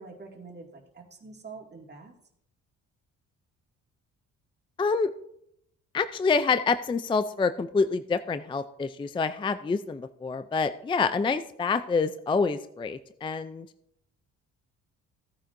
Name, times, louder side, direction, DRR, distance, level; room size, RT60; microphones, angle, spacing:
voice 1, 0.0-2.1, right 4 dB, 35° right, 0 dB, 2.2 m, -45 dB
voice 2, 4.8-5.1 5.9-13.7, left 4 dB, 15° left, 12 dB, 0.4 m, -27 dB
15.0 x 9.7 x 2.6 m, 0.76 s
cardioid pair, 90°, 30 cm